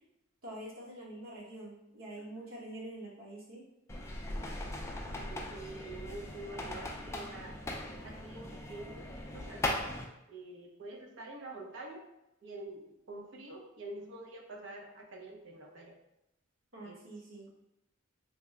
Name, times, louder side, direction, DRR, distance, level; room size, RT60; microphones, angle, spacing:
voice 1, 0.4-3.6 16.7-17.5, right 1 dB, 90° right, -5 dB, 1.2 m, -46 dB
voice 2, 2.2-2.5 4.3-4.6 5.3-7.6 8.0-10.0 10.3-12.0 12.4-16.0 16.8-17.0, right 2 dB, 60° right, 0 dB, 0.7 m, -47 dB
sound 1, 3.9-10.0, left 1 dB, 15° left, 0.3 m, -39 dB
3.4 x 2.1 x 3.6 m, 0.88 s
head